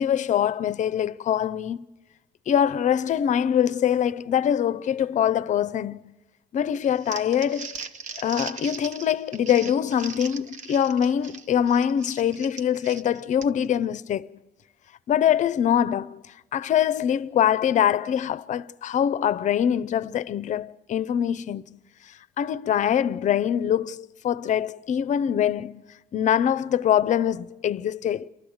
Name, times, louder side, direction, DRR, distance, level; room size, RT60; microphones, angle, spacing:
voice 1, 0.0-1.8 2.5-6.1 6.5-7.8 8.2-14.3 15.1-16.2 16.5-21.8 22.1-25.8 26.1-28.3, left 9 dB, 45° left, 0.6 m, -24 dB
Crumpling crinkling, 6.8-13.7, right 5 dB, 45° right, 0.9 m, -39 dB
28.5 x 12.0 x 7.9 m
cardioid pair, 110°, 17 cm